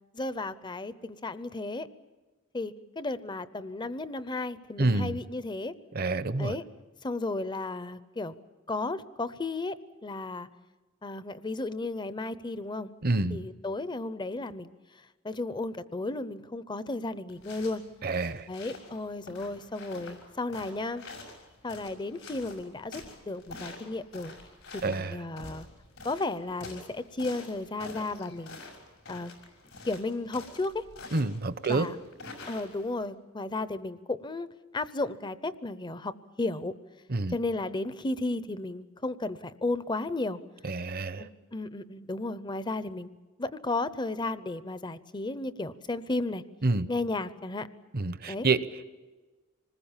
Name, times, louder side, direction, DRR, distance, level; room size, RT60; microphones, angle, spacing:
voice 1, 0.1-1.9 2.5-5.7 6.4-6.6 7.0-8.3 8.7-9.8 10.0-10.5 11.0-12.9 13.3-14.7 15.2-17.8 18.5-21.0 21.6-24.3 24.7-25.7 26.0-28.6 29.1-29.3 29.9-30.8 31.7-32.0 32.5-34.5 34.7-36.1 36.4-36.7 37.3-40.4 41.2-43.1 43.4-46.4 46.9-47.7 48.3-48.5, left 2 dB, 20° left, 14 dB, 0.7 m, -34 dB
voice 2, 4.8-5.2 5.9-6.6 13.0-13.4 18.0-18.4 24.8-25.2 31.1-31.9 37.1-37.3 40.6-41.2 46.6-46.9 47.9-48.8, right 3 dB, 50° right, 13 dB, 0.8 m, -28 dB
sound 1, 17.3-33.0, left 3 dB, 85° left, 6.0 m, -47 dB
26.5 x 20.5 x 7.3 m, 1.3 s
head